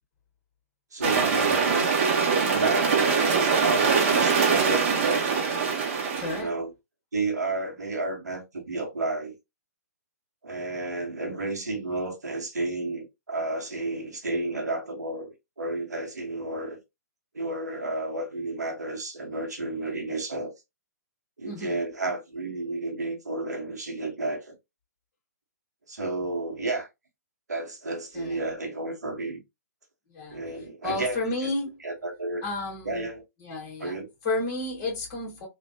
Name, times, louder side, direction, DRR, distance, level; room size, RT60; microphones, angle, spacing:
voice 1, 0.9-1.8 2.5-5.3 6.3-6.7 7.1-9.3 10.4-16.8 17.3-20.5 21.4-24.5 25.9-26.9 27.5-29.4 30.3-31.5 31.8-32.4 32.8-33.2 33.8-34.1, right 2 dB, 75° right, 1.2 m, -31 dB
sound 1, 1.0-6.4, right 5 dB, 45° right, 1.0 m, -23 dB
voice 2, 6.2-6.5 21.4-21.8 28.1-28.4 30.1-30.4 30.8-31.8 32.4-33.1 33.4-34.0 34.2-35.5, left 2 dB, 35° left, 1.7 m, -32 dB
3.2 x 2.5 x 2.7 m
figure-of-eight pair, 125°, 9 cm